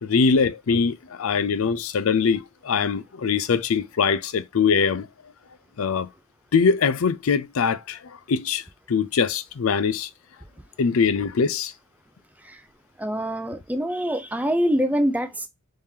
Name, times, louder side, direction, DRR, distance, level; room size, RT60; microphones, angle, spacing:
voice 1, 0.0-5.1 5.8-6.1 6.5-10.1 10.8-11.7, left 5 dB, 80° left, 0.5 m, -22 dB
voice 2, 13.0-15.5, equal, 5° right, 0.5 m, -24 dB
3.6 x 3.2 x 2.7 m
head